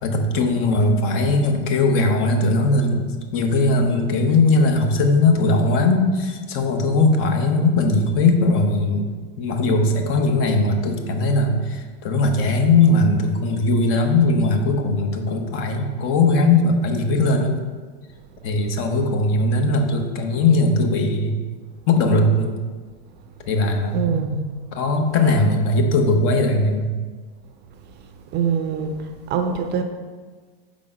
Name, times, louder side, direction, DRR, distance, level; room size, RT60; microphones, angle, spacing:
voice 1, 0.0-3.1 3.3-9.1 9.4-17.6 18.4-21.3 21.9-22.5 23.5-26.9, left 2 dB, 45° left, 4 dB, 0.9 m, -19 dB
voice 2, 23.9-24.4 28.3-29.0 29.3-29.8, right 7 dB, 35° right, 6 dB, 0.5 m, -23 dB
4.9 x 3.8 x 5.1 m, 1.5 s
hypercardioid pair, 110°, 30 cm